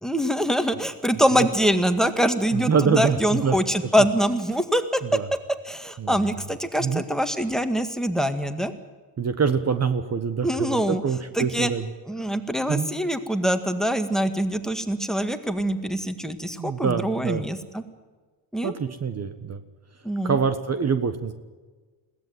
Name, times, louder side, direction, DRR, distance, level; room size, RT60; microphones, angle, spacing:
voice 1, 0.0-5.0 5.7-8.7 10.4-11.0 11.4-11.7 12.1-17.8 18.5-18.7 20.0-20.4, equal, ahead, 9 dB, 1.9 m, -24 dB
voice 2, 2.5-3.5 5.1-5.3 6.0-6.1 6.8-7.0 9.2-11.9 12.7-12.9 16.6-17.4 18.6-19.6 20.2-21.3, right 6 dB, 35° right, 10 dB, 1.4 m, -25 dB
21.5 x 16.5 x 9.3 m, 1.3 s
cardioid pair, 95°, 44 cm